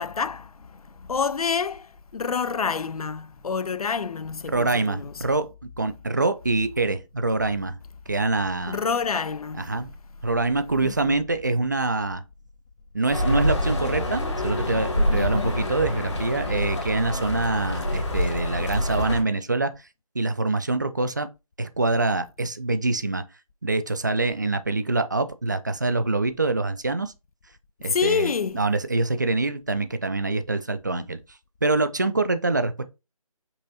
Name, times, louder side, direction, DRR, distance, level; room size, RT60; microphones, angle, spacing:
voice 1, 0.0-5.1 8.7-9.7 10.8-11.2 15.1-15.6 27.9-28.6, left 5 dB, 75° left, 0.4 m, -28 dB
voice 2, 4.5-5.5 5.8-7.8 8.1-8.8 9.5-9.9 10.2-12.2 12.9-19.9 20.1-21.3 21.6-23.2 23.6-27.1 27.8-31.2 31.6-32.7, right 3 dB, 30° right, 0.3 m, -25 dB
sound 1, 13.1-19.2, left 1 dB, 50° left, 1.1 m, -26 dB
5.4 x 2.6 x 2.7 m
figure-of-eight pair, 155°, 19 cm